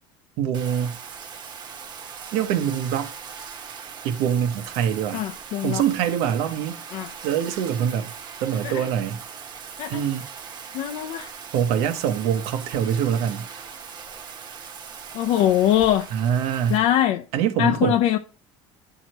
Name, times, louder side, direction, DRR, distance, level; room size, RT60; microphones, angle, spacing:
voice 1, 0.4-1.0 2.3-3.1 4.0-5.2 5.6-6.8 7.2-8.1 8.4-9.2 9.9-10.3 11.2-11.3 11.5-13.5 16.1-16.8 17.3-18.0, right 9 dB, 70° right, 1.0 m, -24 dB
Bathtub (filling or washing), 0.5-16.8, right 6 dB, 40° right, 1.2 m, -40 dB
voice 2, 5.1-5.8 6.9-7.1 8.6-8.8 9.8-10.0 10.7-11.3 15.1-16.1 16.7-17.2 17.6-18.2, left 11 dB, 65° left, 0.7 m, -22 dB
10.0 x 4.8 x 3.0 m
cardioid pair, 130°, 11 cm